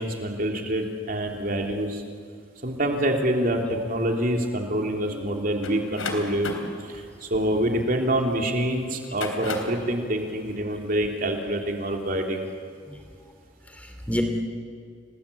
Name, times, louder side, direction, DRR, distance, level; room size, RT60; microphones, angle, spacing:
voice 1, 0.0-2.0 2.6-6.5 6.9-12.4, right 1 dB, 45° right, 2 dB, 3.3 m, -26 dB
voice 2, 5.0-5.8 12.9-13.0 13.7-14.2, equal, 5° left, 4 dB, 3.1 m, -32 dB
sound 1, 5.6-8.3 9.0-9.9, left 3 dB, 90° left, 3.7 m, -34 dB
30.0 x 20.0 x 8.6 m, 2.3 s
head